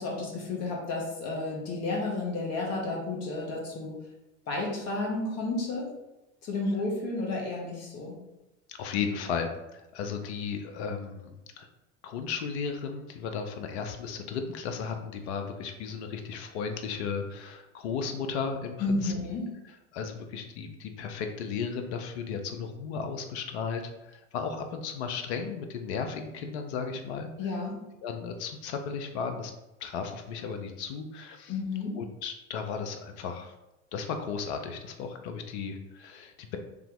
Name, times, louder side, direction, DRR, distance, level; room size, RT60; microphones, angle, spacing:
voice 1, 0.0-4.0 4.5-5.9 6.4-8.1 18.8-19.5 27.4-27.8 31.5-32.0, left 2 dB, 45° left, -1 dB, 1.4 m, -31 dB
voice 2, 8.7-11.7 12.0-19.1 19.9-27.3 28.0-29.5 29.8-31.5 32.0-33.5 33.9-36.6, left 6 dB, 65° left, 6 dB, 0.6 m, -35 dB
3.4 x 2.8 x 3.6 m, 0.95 s
hypercardioid pair, 80°, 36 cm